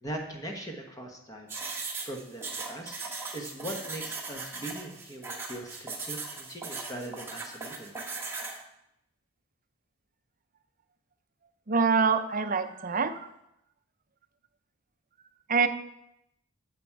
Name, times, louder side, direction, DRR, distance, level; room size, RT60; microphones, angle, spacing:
voice 1, 0.0-1.5 2.0-3.0 3.3-7.9, right 1 dB, 15° left, 2 dB, 1.2 m, -40 dB
sound 1, 1.5-8.6, right 4 dB, 10° right, 1.4 m, -38 dB
voice 2, 11.7-13.3 15.5-15.7, right 5 dB, 40° right, 10 dB, 0.6 m, -25 dB
9.5 x 7.7 x 4.7 m, 0.81 s
head